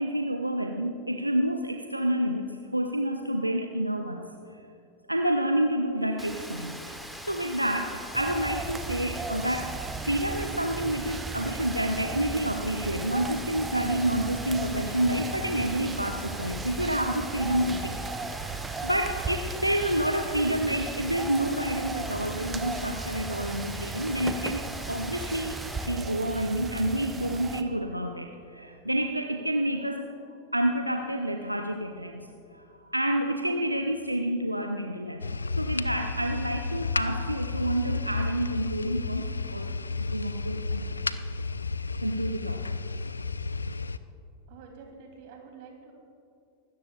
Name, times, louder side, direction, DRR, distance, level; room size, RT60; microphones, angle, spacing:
voice 1, 0.0-4.2 5.1-6.9 7.2-18.0 18.3-30.0 30.5-32.3 32.5-32.6 32.9-35.3 35.6-39.7 40.1-40.9 42.0-42.8, right 1 dB, 85° right, 5 dB, 0.6 m, -29 dB
Rain, 6.2-25.9, equal, ahead, 1.4 m, -42 dB
sound 1, 8.1-27.6, right 4 dB, 20° right, 0.8 m, -36 dB
sound 2, 35.2-44.0, left 3 dB, 80° left, 0.4 m, -32 dB
voice 2, 44.5-45.9, right 5 dB, 50° right, 1 dB, 3.0 m, -48 dB
24.5 x 13.5 x 2.4 m, 2.6 s
figure-of-eight pair, 90°, 0 cm